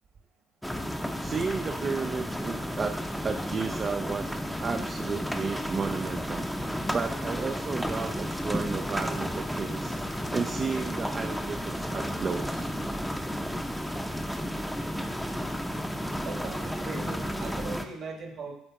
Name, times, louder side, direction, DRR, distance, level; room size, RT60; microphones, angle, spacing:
sound 1, 0.6-17.9, equal, 5° left, 0.7 m, -32 dB
voice 1, 1.2-4.3 4.6-6.5 6.9-10.0 10.3-12.7, right 5 dB, 40° right, 6 dB, 0.4 m, -33 dB
voice 2, 16.2-18.5, right 4 dB, 55° right, 3 dB, 1.4 m, -39 dB
7.8 x 3.7 x 4.7 m, 0.77 s
hypercardioid pair, 60°, 0 cm